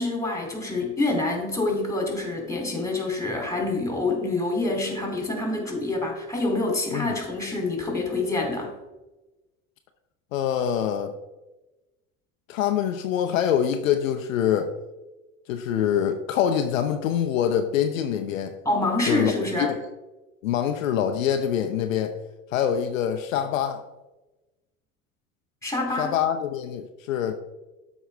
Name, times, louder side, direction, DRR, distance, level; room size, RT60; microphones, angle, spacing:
voice 1, 0.0-8.7 18.6-19.7 25.6-26.1, left 2 dB, 5° left, 1 dB, 2.8 m, -26 dB
voice 2, 10.3-11.1 12.5-14.7 15.5-18.6 19.1-19.8 20.4-22.2 22.5-23.8 26.0-27.3, left 9 dB, 70° left, 7 dB, 0.7 m, -25 dB
12.5 x 4.7 x 3.3 m, 1.1 s
figure-of-eight pair, 70°, 41 cm